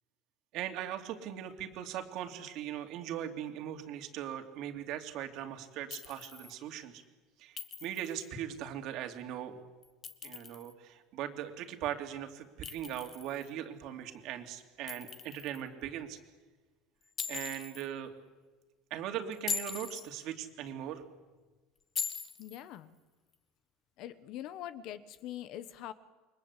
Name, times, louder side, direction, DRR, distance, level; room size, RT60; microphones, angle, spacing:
voice 1, 0.5-7.0 7.4-9.6 10.2-16.2 17.3-18.1 18.9-21.0, right 10 dB, 45° right, 6 dB, 2.9 m, -40 dB
Chink clink, 5.9-6.5 7.6-8.2 9.8-10.7 12.6-13.5 14.9-15.6 17.2-17.9 19.3-20.1 22.0-22.6, left 6 dB, 20° left, 1.3 m, -40 dB
voice 2, 22.4-23.0 24.0-25.9, left 12 dB, 45° left, 14 dB, 1.2 m, -43 dB
29.0 x 24.0 x 8.4 m, 1.3 s
cardioid pair, 175°, 0 cm